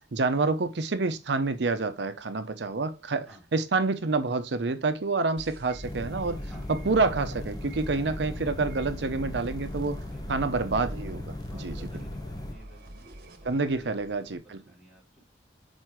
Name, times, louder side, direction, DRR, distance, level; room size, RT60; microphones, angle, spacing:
voice 1, 0.1-6.4 6.7-10.0 10.3-11.8 13.4-14.6, right 3 dB, 70° right, 0.6 m, -28 dB
sound 1, 5.4-14.4, right 1 dB, 55° right, 1.5 m, -46 dB
sound 2, 5.8-12.6, left 1 dB, 20° left, 0.5 m, -37 dB
voice 2, 11.4-13.0 13.8-15.2, right 1 dB, ahead, 3.3 m, -54 dB
6.3 x 4.4 x 4.6 m
head